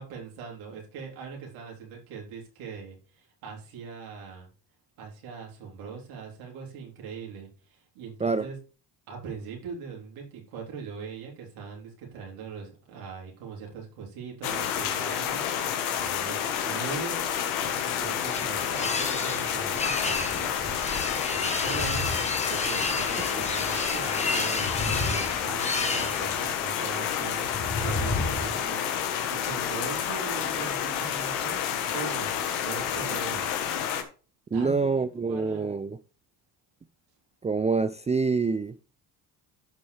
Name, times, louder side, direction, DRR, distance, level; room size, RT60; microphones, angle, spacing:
voice 1, 0.0-4.5 5.0-8.6 9.1-17.2 17.5-22.1 22.5-33.5 34.5-35.7, right 6 dB, 80° right, 3.7 m, -41 dB
sound 1, 14.4-34.0, left 9 dB, 80° left, 1.5 m, -29 dB
sound 2, 17.7-26.6, left 2 dB, 15° left, 1.6 m, -32 dB
sound 3, 21.5-22.4 22.7-23.0 24.4-26.0 27.4-28.7, left 2 dB, 40° left, 4.1 m, -32 dB
voice 2, 34.5-36.0 37.4-38.8, right 4 dB, 15° right, 0.4 m, -26 dB
11.5 x 6.1 x 3.4 m
hypercardioid pair, 65°, 48 cm